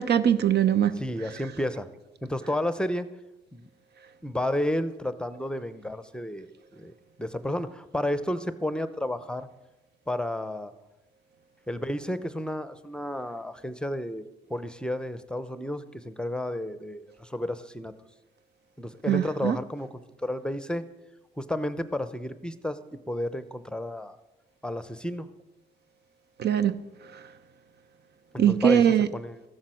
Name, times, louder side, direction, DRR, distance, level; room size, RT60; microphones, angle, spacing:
voice 1, 0.0-0.9 19.1-19.6 26.4-26.8 27.1-27.2 28.4-29.1, right 9 dB, 55° right, 0.6 m, -22 dB
voice 2, 1.0-1.9 2.2-3.1 3.5-3.7 4.2-6.9 7.2-9.5 10.1-10.7 11.7-14.2 14.5-17.9 18.8-20.8 21.4-22.8 23.1-24.1 24.6-25.3 28.3-28.8 29.1-29.4, left 1 dB, 5° left, 0.7 m, -31 dB
14.0 x 7.4 x 6.2 m
cardioid pair, 90°, 20 cm